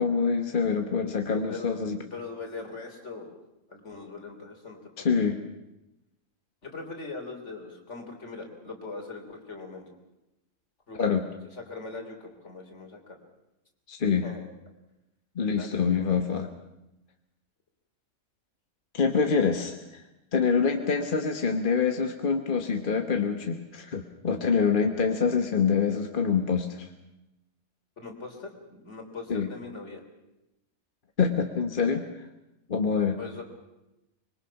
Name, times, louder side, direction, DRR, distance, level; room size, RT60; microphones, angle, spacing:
voice 1, 0.0-2.0 5.0-5.4 11.0-11.3 13.9-14.3 15.4-16.5 18.9-20.0 20.3-26.9 29.3-29.5 31.2-32.0 32.7-33.2, left 6 dB, 40° left, 5 dB, 1.3 m, -25 dB
voice 2, 1.5-1.8 2.1-3.3 3.7-5.3 6.6-9.9 10.9-11.0 11.6-13.2 14.2-14.5 15.5-16.3 28.0-30.0 33.2-33.4, left 3 dB, 55° left, 3 dB, 3.8 m, -41 dB
25.0 x 22.5 x 5.8 m, 0.94 s
omnidirectional pair, 1.5 m